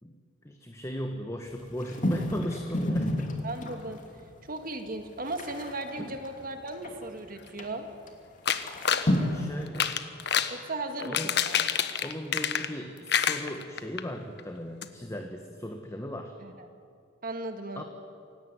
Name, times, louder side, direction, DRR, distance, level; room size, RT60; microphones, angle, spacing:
voice 1, 0.0-3.4 6.0-6.2 9.2-10.0 11.0-11.4 12.0-16.3 17.7-17.8, equal, 15° left, 4 dB, 1.4 m, -37 dB
sound 1, 1.5-4.0 4.6-4.7 4.9-7.0 7.6-7.7 8.1-8.2 8.5-9.7, left 1 dB, 40° left, 2.9 m, -30 dB
voice 2, 3.4-4.0 4.4-7.9 10.5-11.6 16.4-16.5 17.2-17.8, right 2 dB, 45° right, 6 dB, 1.9 m, -36 dB
sound 2, 8.5-9.1 9.7-10.6 11.0-12.8 13.1-14.0 14.4-14.5 14.8-14.9, left 8 dB, 60° left, 1.3 m, -27 dB
27.5 x 17.5 x 9.7 m, 2.5 s
head